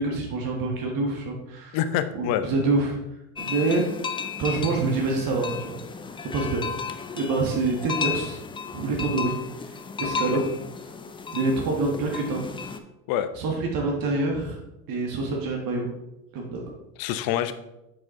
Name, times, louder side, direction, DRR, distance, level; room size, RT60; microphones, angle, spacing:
voice 1, 0.0-1.8 2.1-3.0 3.4-3.8 4.4-5.8 6.3-6.6 7.1-8.4 8.7-9.4 10.0-10.6 11.3-12.4 13.4-14.6 14.9-15.9 16.3-16.7, right 3 dB, 45° right, 0 dB, 1.6 m, -26 dB
voice 2, 1.7-2.5 10.0-10.4 13.1-13.3 17.0-17.5, left 11 dB, 50° left, 11 dB, 0.7 m, -26 dB
sound 1, 3.4-12.8, left 5 dB, 10° left, 0.4 m, -34 dB
7.7 x 4.9 x 3.7 m, 0.93 s
hypercardioid pair, 75°, 47 cm